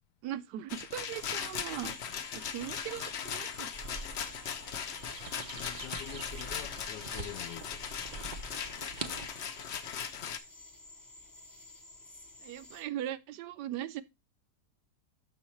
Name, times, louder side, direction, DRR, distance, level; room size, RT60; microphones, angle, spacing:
voice 1, 0.2-2.0 2.3-3.7 12.4-14.0, right 12 dB, 90° right, 1.2 m, -39 dB
Rattle, 0.7-10.4, left 8 dB, 60° left, 0.7 m, -39 dB
sound 1, 1.0-12.8, left 2 dB, 20° left, 0.6 m, -52 dB
sound 2, 3.7-9.3, right 4 dB, 65° right, 0.4 m, -44 dB
voice 2, 5.5-7.9, left 13 dB, 85° left, 1.2 m, -46 dB
6.3 x 5.8 x 4.3 m
omnidirectional pair, 1.8 m